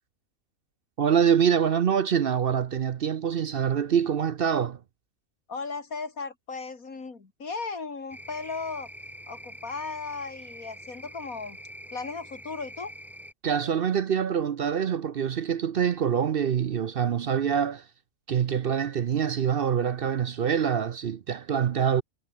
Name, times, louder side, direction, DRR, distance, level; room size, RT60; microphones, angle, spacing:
voice 1, 1.0-4.8 13.4-17.8 18.3-22.0, right 8 dB, 55° right, 0.7 m, -25 dB
voice 2, 5.5-8.9 9.3-11.6 11.9-12.9, left 4 dB, 75° left, 3.1 m, -36 dB
sound 1, 8.1-13.3, equal, ahead, 2.3 m, -45 dB
omnidirectional pair, 1.5 m